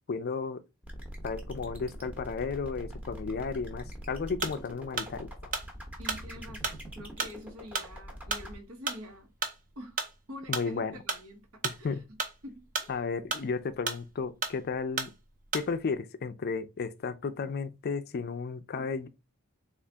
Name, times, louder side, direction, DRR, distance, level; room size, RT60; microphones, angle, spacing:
voice 1, 0.1-0.6 1.2-5.5 10.5-11.0 11.6-12.0 12.9-15.1 15.5-19.1, left 5 dB, 45° left, 0.4 m, -33 dB
sound 1, 0.8-8.5, equal, 5° right, 0.8 m, -43 dB
sound 2, 4.4-15.9, right 4 dB, 40° right, 0.7 m, -35 dB
voice 2, 6.0-9.3 9.7-10.0 10.3-12.2 12.4-13.0, left 1 dB, 80° right, 1.1 m, -46 dB
3.8 x 2.4 x 3.4 m
head